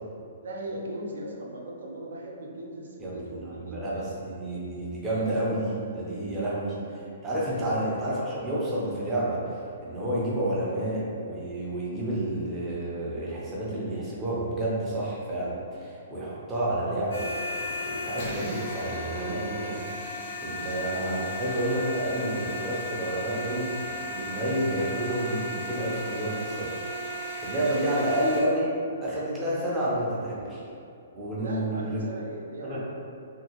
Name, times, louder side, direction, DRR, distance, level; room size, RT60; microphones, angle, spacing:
voice 1, 0.4-4.1 6.4-6.5 7.5-7.7 20.5-20.9 31.4-32.8, right 1 dB, 85° right, -1 dB, 0.5 m, -39 dB
voice 2, 3.0-6.7 7.2-19.9 20.4-28.7 29.0-30.6 31.1-32.0 32.6-32.8, right 1 dB, 10° right, -7 dB, 0.5 m, -30 dB
sound 1, 17.1-28.4, left 1 dB, 45° left, 0.6 m, -35 dB
2.6 x 2.6 x 2.9 m, 2.5 s
hypercardioid pair, 175°, 0 cm